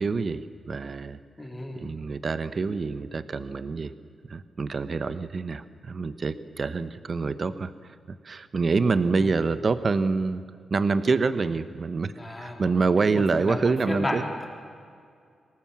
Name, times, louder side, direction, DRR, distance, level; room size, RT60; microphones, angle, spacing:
voice 1, 0.0-1.2 1.8-3.9 4.2-10.4 10.7-12.1 12.4-14.2, right 4 dB, 40° right, 13 dB, 1.0 m, -26 dB
voice 2, 1.4-1.9 9.2-9.4 12.1-12.7 13.4-14.5, left 1 dB, 15° left, 1 dB, 4.0 m, -33 dB
23.5 x 19.0 x 7.4 m, 2.2 s
cardioid pair, 110°, 0 cm